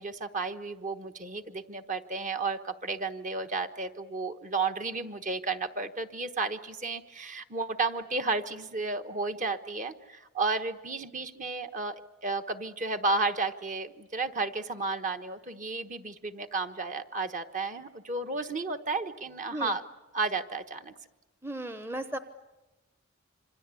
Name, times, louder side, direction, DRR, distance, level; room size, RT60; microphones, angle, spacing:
voice 1, 0.0-19.8 20.1-20.9, right 3 dB, 40° right, 7 dB, 1.2 m, -32 dB
voice 2, 21.4-22.2, right 1 dB, 10° right, 9 dB, 0.9 m, -35 dB
27.0 x 25.0 x 8.5 m, 1.1 s
head